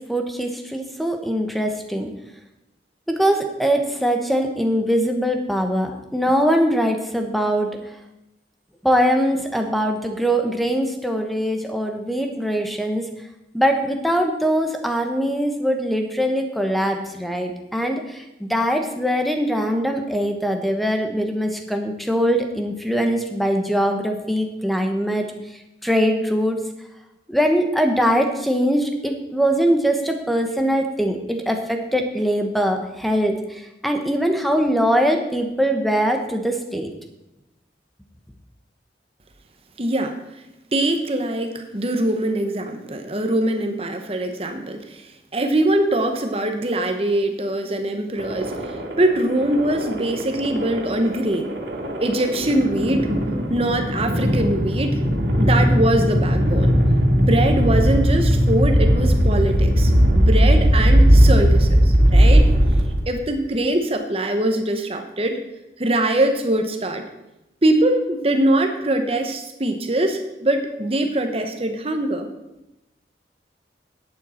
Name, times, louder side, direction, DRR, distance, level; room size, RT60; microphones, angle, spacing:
voice 1, 0.1-2.1 3.1-7.7 8.8-13.0 13.5-25.3 25.8-26.6 27.3-33.3 33.8-36.9, equal, ahead, 4 dB, 1.0 m, -22 dB
voice 2, 39.8-40.2 40.7-45.0 45.3-48.5 49.0-51.5 52.0-53.1 53.5-55.0 55.4-56.8 57.2-62.5 63.1-65.4 65.8-67.1 67.6-72.3, right 1 dB, 35° right, 6 dB, 1.1 m, -22 dB
sound 1, 48.2-63.3, equal, 85° right, 2.3 m, -18 dB
11.0 x 8.8 x 4.4 m, 0.93 s
head